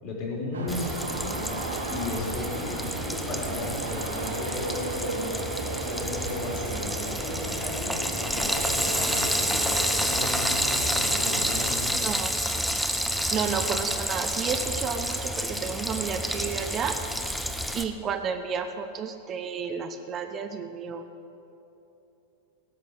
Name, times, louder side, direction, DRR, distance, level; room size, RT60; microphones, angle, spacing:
voice 1, 0.0-1.5 1.9-5.4 5.8-12.1, left 2 dB, 40° left, -2 dB, 3.8 m, -35 dB
sound 1, 0.5-11.7, right 3 dB, 70° right, 1.4 m, -35 dB
Frying (food), 0.7-17.8, equal, ahead, 0.8 m, -29 dB
voice 2, 12.0-12.3 13.3-17.0 17.7-21.0, right 6 dB, 30° right, 7 dB, 0.7 m, -31 dB
17.0 x 6.7 x 8.1 m, 3.0 s
figure-of-eight pair, 90°, 0 cm